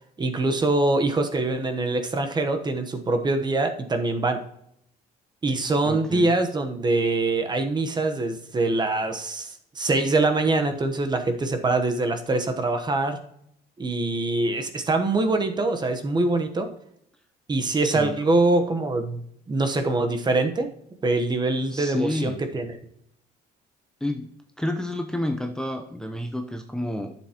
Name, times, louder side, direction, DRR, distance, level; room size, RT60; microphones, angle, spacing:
voice 1, 0.2-4.4 5.4-13.2 13.8-16.7 17.5-19.2 19.5-20.7 21.0-22.8, right 2 dB, 25° right, 7 dB, 1.0 m, -24 dB
voice 2, 5.8-6.3 17.8-18.2 21.7-22.4 24.0-24.3 24.6-27.1, left 1 dB, 5° left, 4 dB, 0.7 m, -30 dB
11.0 x 7.2 x 2.9 m, 0.73 s
cardioid pair, 110°, 17 cm